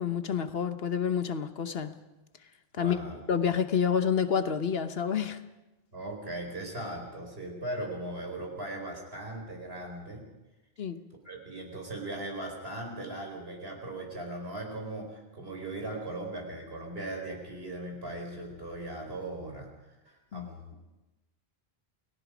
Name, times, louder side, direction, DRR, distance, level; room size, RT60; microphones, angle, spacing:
voice 1, 0.0-1.9 2.8-3.0 3.3-5.4 10.8-11.0 20.3-20.5, left 7 dB, 70° left, 10 dB, 1.3 m, -28 dB
voice 2, 2.8-3.2 5.9-10.2 11.2-19.7 20.0-20.7, right 1 dB, 70° right, 2 dB, 5.1 m, -38 dB
28.5 x 18.5 x 5.1 m, 1.0 s
omnidirectional pair, 1.1 m